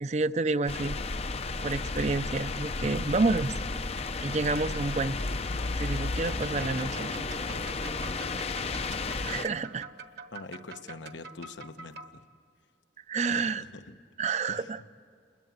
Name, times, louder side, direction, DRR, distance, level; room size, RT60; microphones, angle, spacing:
voice 1, 0.0-1.0 1.6-3.5 4.2-5.2 5.8-7.3 9.2-9.8 13.1-13.6 14.2-14.8, right 3 dB, 35° right, 13 dB, 0.5 m, -29 dB
sound 1, 0.7-9.5, left 3 dB, 35° left, 0.6 m, -33 dB
sound 2, 6.2-12.1, right 4 dB, 60° right, 1.3 m, -45 dB
voice 2, 10.3-12.2 13.3-14.0 14.5-14.7, left 3 dB, 85° left, 8 dB, 1.1 m, -44 dB
29.0 x 22.0 x 8.0 m, 2.3 s
head